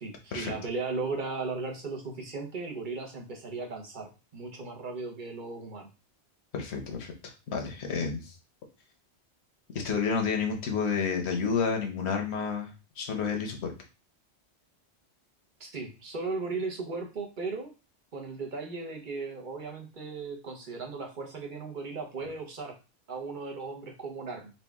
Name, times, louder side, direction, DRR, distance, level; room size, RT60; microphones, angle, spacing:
voice 1, 0.0-5.9 15.6-17.7 18.1-22.7 23.1-24.5, right 4 dB, 50° right, 2 dB, 1.1 m, -36 dB
voice 2, 6.5-8.3 9.7-13.7, left 5 dB, 75° left, 3 dB, 1.2 m, -30 dB
4.2 x 2.4 x 3.5 m, 0.31 s
omnidirectional pair, 1.1 m